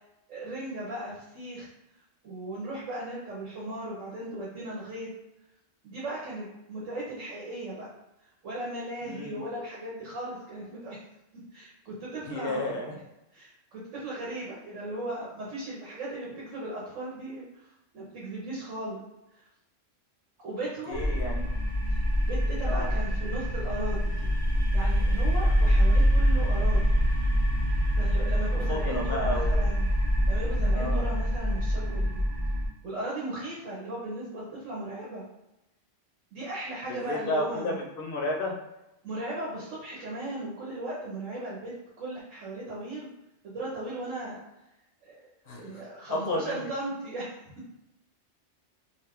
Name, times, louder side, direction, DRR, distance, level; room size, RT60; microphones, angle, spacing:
voice 1, 0.3-1.7 2.2-5.1 5.8-7.9 8.4-11.0 11.5-12.8 13.3-17.7 17.9-19.0 19.4-19.5 20.4-21.2 21.9-24.3 24.7-26.9 28.0-29.8 30.3-32.2 32.8-35.3 36.3-37.8 39.0-43.1 43.4-44.4 45.0-47.4, right 1 dB, 90° right, -5 dB, 1.1 m, -37 dB
voice 2, 9.0-9.4 12.3-12.9 20.9-21.5 22.6-22.9 28.7-29.6 30.7-31.1 36.9-38.5 45.5-45.8 46.1-46.7, left 1 dB, 60° left, 0 dB, 0.6 m, -32 dB
sound 1, 20.9-32.7, equal, 50° right, 0.7 m, -25 dB
2.4 x 2.4 x 3.4 m, 0.92 s
omnidirectional pair, 1.3 m